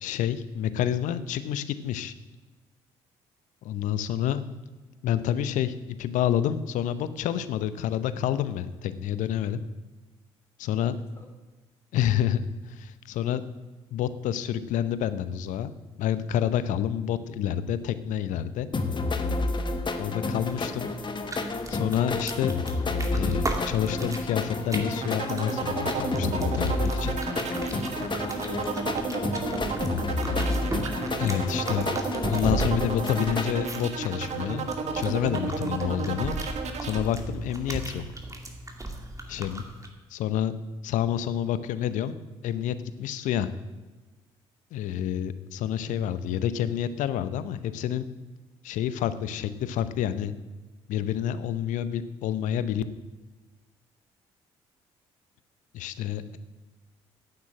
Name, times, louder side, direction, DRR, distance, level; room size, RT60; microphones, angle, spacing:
voice 1, 0.0-2.1 3.6-4.4 5.0-9.6 10.6-11.0 11.9-13.4 13.9-15.7 16.0-18.7 20.0-20.9 21.7-22.6 23.1-27.1 31.2-31.9 32.3-34.6 34.9-36.4 36.8-38.0 39.3-39.6 40.1-40.6 40.8-42.2 42.4-43.5 44.7-48.1 48.6-50.3 50.9-52.8 55.7-56.4, left 10 dB, 70° left, 14 dB, 0.7 m, -28 dB
sound 1, 18.7-33.5, left 3 dB, 35° left, 1.3 m, -30 dB
sound 2, 20.3-39.9, right 2 dB, 25° right, 2.3 m, -37 dB
sound 3, 25.0-37.0, right 5 dB, 55° right, 1.5 m, -32 dB
voice 2, 28.3-29.8, left 2 dB, 20° left, 3 dB, 3.6 m, -52 dB
8.9 x 7.9 x 8.9 m, 1.3 s
hypercardioid pair, 50°, 14 cm